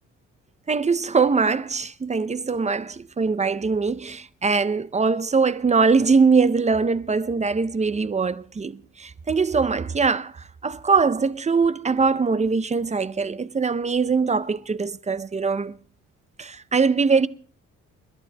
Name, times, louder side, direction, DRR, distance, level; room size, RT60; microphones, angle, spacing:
voice 1, 0.7-10.3 10.6-15.7 16.4-17.3, right 4 dB, 25° right, 0.5 m, -22 dB
29.5 x 11.5 x 2.2 m
cardioid pair, 90°, 30 cm